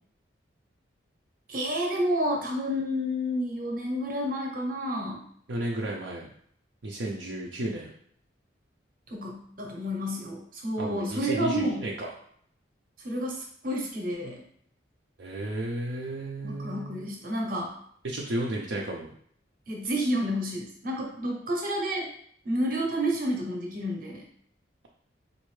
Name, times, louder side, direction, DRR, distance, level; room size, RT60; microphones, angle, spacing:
voice 1, 1.5-5.3 9.1-11.9 13.0-14.4 16.4-17.8 19.7-22.1 22.4-24.3, equal, 45° right, 0 dB, 0.8 m, -30 dB
voice 2, 5.5-6.3 6.8-7.9 10.8-12.1 15.2-17.1 18.0-19.1, right 1 dB, 70° right, -3 dB, 0.5 m, -33 dB
4.2 x 2.6 x 3.2 m, 0.63 s
head